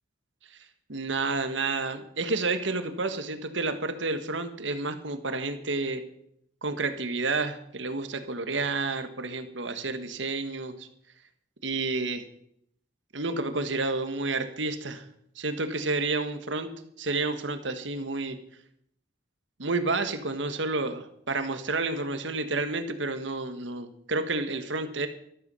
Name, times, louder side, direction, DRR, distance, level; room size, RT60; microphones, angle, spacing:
voice 1, 0.9-6.0 6.6-10.9 11.6-12.2 13.1-15.0 15.3-16.7 17.0-18.4 19.6-25.1, right 3 dB, 85° right, 9 dB, 1.6 m, -30 dB
13.0 x 13.0 x 5.6 m, 0.70 s
head